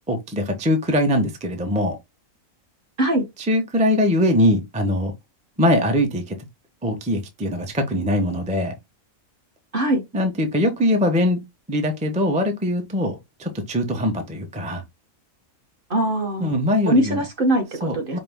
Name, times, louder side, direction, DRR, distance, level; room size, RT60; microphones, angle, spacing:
voice 1, 0.1-2.0 3.4-5.1 5.6-6.4 6.8-8.7 10.1-11.4 11.7-14.8 16.4-17.2 17.8-18.2, left 1 dB, 10° right, 0.4 m, -22 dB
voice 2, 15.9-16.5 16.9-18.2, right 1 dB, 45° right, 0.9 m, -21 dB
5.1 x 2.1 x 3.4 m
omnidirectional pair, 1.6 m